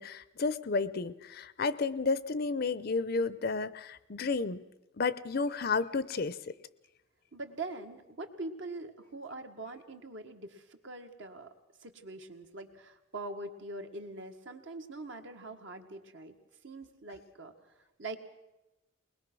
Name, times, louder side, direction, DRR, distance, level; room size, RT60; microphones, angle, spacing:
voice 1, 0.0-4.6 5.0-6.4, left 4 dB, 50° left, 16 dB, 0.6 m, -32 dB
voice 2, 7.3-11.5 11.8-16.4 16.6-17.5 18.0-18.2, right 2 dB, 65° right, 5 dB, 1.7 m, -43 dB
21.0 x 20.5 x 6.2 m, 0.99 s
head